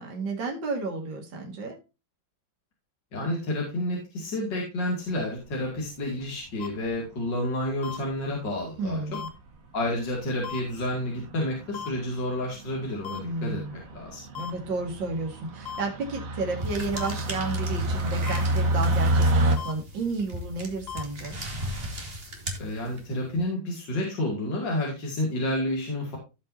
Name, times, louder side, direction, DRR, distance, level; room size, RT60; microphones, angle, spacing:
voice 1, 0.0-1.8 8.8-9.3 13.2-13.7 14.3-21.4, right 3 dB, 70° right, 2 dB, 2.7 m, -32 dB
voice 2, 3.1-9.0 9.7-14.2 22.6-26.2, left 1 dB, 65° left, -2 dB, 3.1 m, -30 dB
sound 1, 5.4-5.9 6.8-7.3 8.1-8.2 8.4-8.5 8.8-8.9 9.2-9.5 9.9-10.2 10.4-19.6, right 1 dB, 45° right, 1.6 m, -29 dB
sound 2, 6.6-6.7 7.8-8.0 9.1-9.3 10.4-10.6 11.7-11.9 13.0-13.2 14.3-14.5 15.7-15.8 17.0-17.1 18.3-18.4 19.6-19.7 20.9-21.0, left 8 dB, 35° left, 1.5 m, -36 dB
sound 3, 16.6-23.3, equal, 30° right, 2.1 m, -37 dB
16.5 x 5.6 x 2.7 m, 0.27 s
omnidirectional pair, 2.1 m